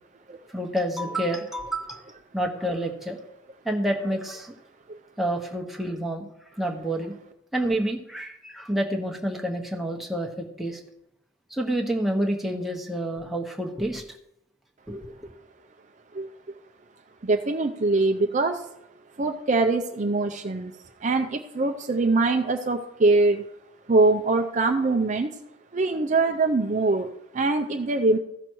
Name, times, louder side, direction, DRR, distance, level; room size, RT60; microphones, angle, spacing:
voice 1, 0.5-2.0 2.3-3.2 3.6-4.5 5.2-6.3 6.6-7.2 7.5-10.8 11.5-14.1 14.9-15.1, right 1 dB, ahead, 0 dB, 1.0 m, -28 dB
voice 2, 17.2-18.7 19.2-20.7 21.0-23.4 23.9-25.4 25.7-28.2, right 3 dB, 35° right, 5 dB, 0.5 m, -23 dB
14.5 x 6.0 x 4.6 m, 0.79 s
head